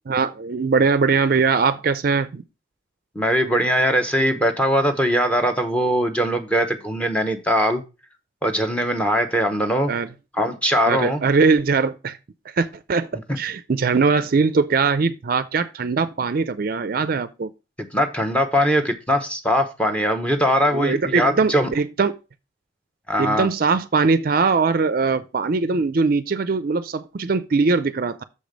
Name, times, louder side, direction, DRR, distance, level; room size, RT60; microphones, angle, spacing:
voice 1, 0.1-2.4 9.9-10.1 10.9-12.2 12.6-13.1 13.4-17.5 20.7-22.2 23.2-28.2, right 4 dB, 50° right, 0.4 m, -21 dB
voice 2, 3.1-7.8 8.4-9.9 10.3-11.2 17.9-21.7 23.1-23.5, equal, 5° left, 0.9 m, -21 dB
6.6 x 5.1 x 5.1 m
head